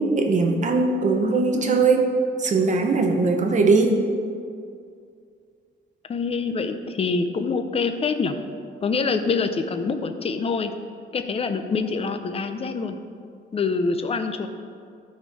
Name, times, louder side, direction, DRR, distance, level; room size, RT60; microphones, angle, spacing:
voice 1, 0.0-2.1 2.4-4.0, right 3 dB, 35° right, 4 dB, 0.9 m, -20 dB
voice 2, 6.1-8.4 8.8-10.7 11.1-13.0 13.5-14.5, left 4 dB, 30° left, 8 dB, 0.5 m, -25 dB
12.5 x 4.4 x 4.7 m, 2.3 s
cardioid pair, 155°, 21 cm